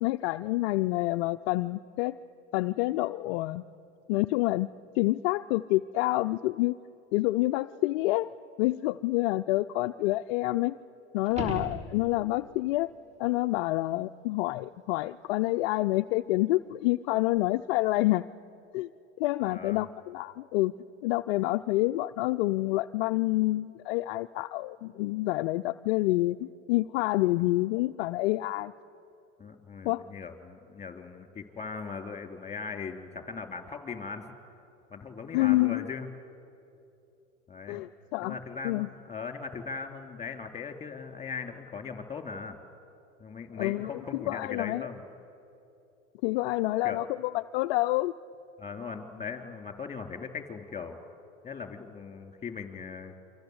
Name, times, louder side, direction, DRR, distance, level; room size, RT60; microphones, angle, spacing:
voice 1, 0.0-2.1 2.5-3.6 4.1-4.7 5.0-6.8 7.1-8.3 8.6-10.8 11.1-12.9 13.2-18.2 18.7-18.9 19.2-20.7 21.0-28.7 29.8-30.0 35.3-35.9 37.7-38.4 38.6-38.9 43.6-44.9 46.2-48.1, left 18 dB, 55° left, 8 dB, 0.6 m, -28 dB
sound 1, 11.2-12.5 17.4-17.5, equal, 20° right, 3.0 m, -37 dB
voice 2, 19.4-19.9 29.4-34.3 34.9-36.1 37.5-37.8 38.2-42.6 43.2-45.1 46.8-47.0 48.6-51.0 51.4-53.1, left 5 dB, 15° left, 7 dB, 3.2 m, -39 dB
29.0 x 25.0 x 8.0 m, 2.8 s
hypercardioid pair, 95°, 37 cm